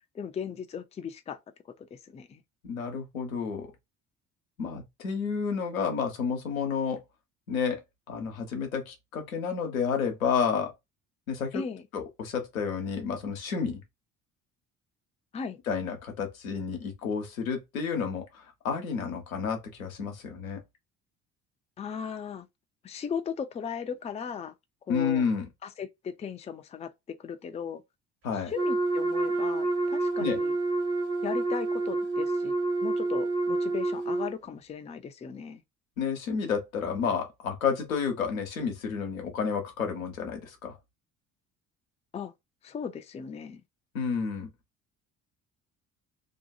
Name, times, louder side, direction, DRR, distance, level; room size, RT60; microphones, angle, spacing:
voice 1, 0.1-1.4 1.8-2.4 11.5-11.8 15.3-15.6 21.8-22.5 22.8-24.5 24.9-25.3 25.6-27.8 28.3-30.6 31.2-32.5 32.8-35.6 42.1-42.3 42.6-43.6, left 7 dB, 15° left, 0.4 m, -37 dB
voice 2, 2.6-3.7 4.6-7.0 7.5-7.8 8.1-10.7 11.3-11.6 11.9-13.8 15.7-20.6 24.9-25.4 28.2-28.5 30.2-30.4 36.0-40.8 43.9-44.5, left 6 dB, 85° left, 0.9 m, -30 dB
Wind instrument woodwind instrument, 28.5-34.3, right 2 dB, 40° right, 0.9 m, -28 dB
2.7 x 2.2 x 2.6 m
figure-of-eight pair, 55°, 40 cm